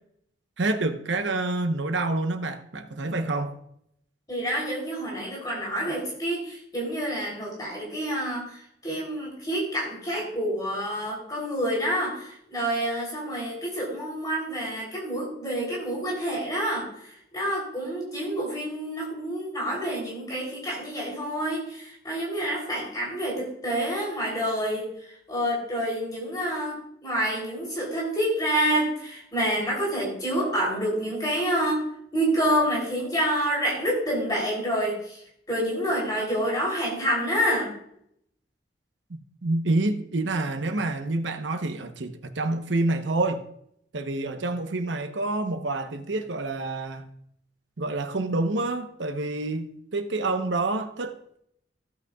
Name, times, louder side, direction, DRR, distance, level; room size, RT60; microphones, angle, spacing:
voice 1, 0.6-3.6 39.1-43.5 43.9-47.1 47.8-51.2, right 2 dB, 85° right, 1.0 m, -28 dB
voice 2, 4.3-24.9 25.3-31.8 32.1-35.2 35.5-37.7, equal, 20° left, 3.4 m, -28 dB
15.5 x 8.8 x 2.4 m
head